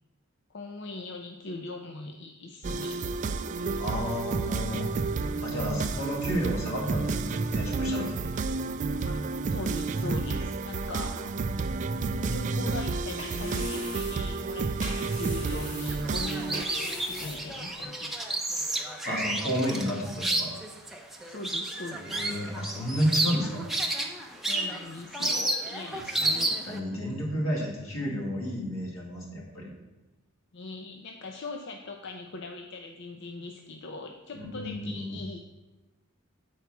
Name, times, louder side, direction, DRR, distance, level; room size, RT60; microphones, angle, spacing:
voice 1, 0.5-3.0 3.6-3.8 5.2-5.7 9.1-11.2 12.1-18.3 21.0-22.2 24.4-27.0 30.5-35.4, left 2 dB, 55° left, 3 dB, 0.6 m, -41 dB
sound 1, 2.6-16.6, right 3 dB, 35° right, 0.3 m, -31 dB
voice 2, 3.8-4.9 5.4-8.3 11.6-11.7 19.0-20.5 21.9-23.6 26.0-26.4 26.7-29.7 34.3-35.2, equal, 85° left, -3 dB, 2.5 m, -32 dB
sound 2, 12.8-17.9, equal, 30° left, 2.5 m, -43 dB
sound 3, 15.9-26.8, right 2 dB, ahead, 0.7 m, -31 dB
8.2 x 4.6 x 6.0 m, 1.1 s
head